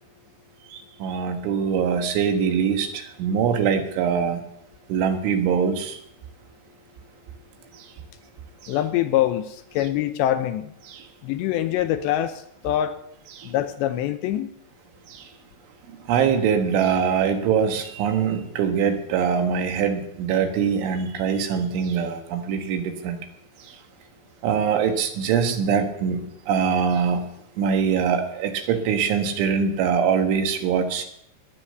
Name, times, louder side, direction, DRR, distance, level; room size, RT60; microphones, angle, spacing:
voice 1, 0.7-4.4 4.9-6.0 7.7-7.9 8.6-8.8 10.9-11.1 13.4-13.5 15.1-15.3 16.1-23.2 23.6-23.8 24.4-27.2 27.6-31.0, right 7 dB, 80° right, 3.9 m, -23 dB
voice 2, 8.7-10.7 11.2-13.0 13.4-14.5, left 12 dB, 80° left, 2.8 m, -24 dB
21.0 x 8.8 x 6.7 m
omnidirectional pair, 5.5 m